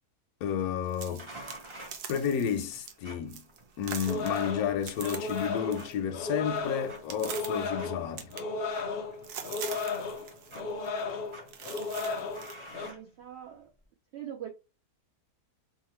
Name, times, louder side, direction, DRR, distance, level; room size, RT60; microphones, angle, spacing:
voice 1, 0.4-1.3 2.1-3.4 3.8-8.3, left 8 dB, 75° left, 1.0 m, -31 dB
sound 1, 0.9-2.9 3.3-3.6 3.8-6.0 6.3-7.7 8.2-8.9 9.2-10.6 10.8-11.0 11.5-12.6, right 8 dB, 90° right, 1.2 m, -43 dB
sound 2, 1.2-13.7, right 1 dB, 30° right, 0.6 m, -52 dB
sound 3, 4.1-12.9, left 4 dB, 90° left, 0.5 m, -35 dB
voice 2, 10.5-11.2 12.8-13.7 14.1-14.5, right 10 dB, 70° right, 0.6 m, -43 dB
2.8 x 2.5 x 3.0 m
omnidirectional pair, 1.7 m